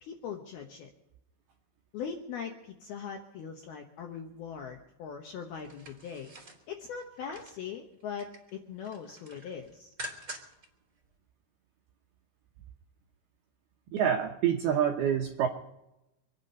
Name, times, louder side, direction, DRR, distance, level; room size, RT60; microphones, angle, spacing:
voice 1, 0.0-0.9 1.9-6.3 6.7-9.9, left 7 dB, 75° left, 3 dB, 2.3 m, -41 dB
sound 1, 5.5-7.6 8.0-8.5 8.8-10.7 11.0-11.1, right 1 dB, 20° right, 2.2 m, -46 dB
voice 2, 13.9-15.5, right 9 dB, 80° right, 2 dB, 2.3 m, -27 dB
26.5 x 9.8 x 5.4 m, 0.93 s
omnidirectional pair, 5.9 m